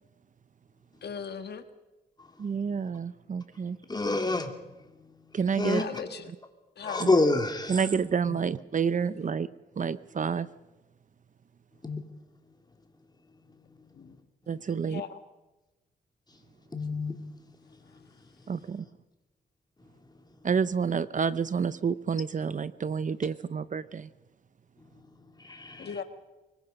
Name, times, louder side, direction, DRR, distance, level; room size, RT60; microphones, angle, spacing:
voice 1, 1.0-1.6 5.7-6.3 6.8-7.1 13.9-14.2 14.9-15.2 25.8-26.0, left 6 dB, 70° left, 8 dB, 1.7 m, -38 dB
voice 2, 2.4-3.8 5.3-5.8 7.0-7.1 7.7-9.5 9.8-10.5 14.5-15.0 18.5-18.8 20.4-24.1, right 6 dB, 45° right, 16 dB, 0.7 m, -29 dB
voice 3, 3.9-4.5 5.6-5.8 6.8-7.8 8.3-8.4 11.8-12.0 16.7-17.1 25.4-26.0, left 2 dB, 25° left, 5 dB, 2.9 m, -27 dB
24.5 x 21.0 x 5.3 m, 1.1 s
cardioid pair, 90°, 18 cm